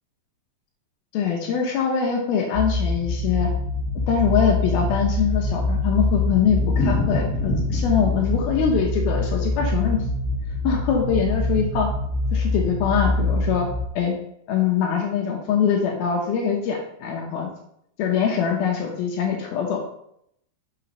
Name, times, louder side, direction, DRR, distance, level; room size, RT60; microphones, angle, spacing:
voice 1, 1.1-3.5 4.1-10.0 10.6-11.9 12.3-13.7 14.0-14.2 14.5-17.5 18.0-19.8, left 7 dB, 90° left, 0 dB, 2.1 m, -23 dB
sound 1, 2.5-13.9, left 2 dB, 80° right, 3.3 m, -24 dB
Thunder, 5.2-11.1 11.4-11.5 11.8-11.9 12.1-12.2 12.8-13.1, left 1 dB, 65° left, 0.7 m, -31 dB
7.2 x 6.0 x 5.3 m, 0.74 s
omnidirectional pair, 5.8 m